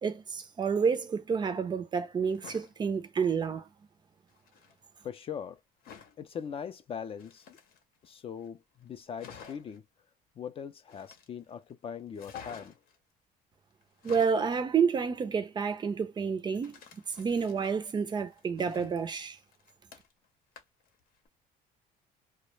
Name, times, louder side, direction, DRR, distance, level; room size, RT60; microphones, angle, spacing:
voice 1, 0.0-3.7 14.0-16.7 17.2-19.4, right 6 dB, 25° right, 0.4 m, -29 dB
sound 1, 2.2-2.7 4.3-4.8 5.8-6.2 7.1-8.1 8.5-8.6 8.8-8.9 9.2-9.8 10.9-11.5 12.2-13.0 13.8-14.5 16.6-17.9 18.3-20.3 20.6-20.9 21.3-21.4, left 7 dB, 70° left, 0.7 m, -51 dB
voice 2, 5.0-5.6 6.2-7.6 8.0-9.8 10.4-12.8, left 7 dB, 35° left, 0.4 m, -40 dB
2.2 x 2.1 x 3.1 m
cardioid pair, 130°, 16 cm